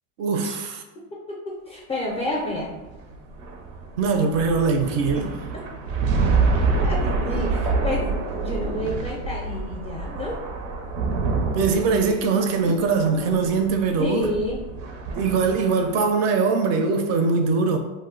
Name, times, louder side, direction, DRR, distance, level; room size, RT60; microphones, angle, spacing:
voice 1, 0.2-0.8 4.0-5.3 8.6-9.0 11.5-14.3 15.1-17.8, right 4 dB, 45° right, 5 dB, 0.4 m, -22 dB
voice 2, 1.1-2.8 6.8-10.4 12.7-12.8 14.0-14.6, left 1 dB, 15° left, -4 dB, 0.4 m, -30 dB
sound 1, 2.4-16.0, right 4 dB, 85° right, 0.6 m, -27 dB
2.5 x 2.1 x 3.7 m, 1.1 s
supercardioid pair, 130°, 38 cm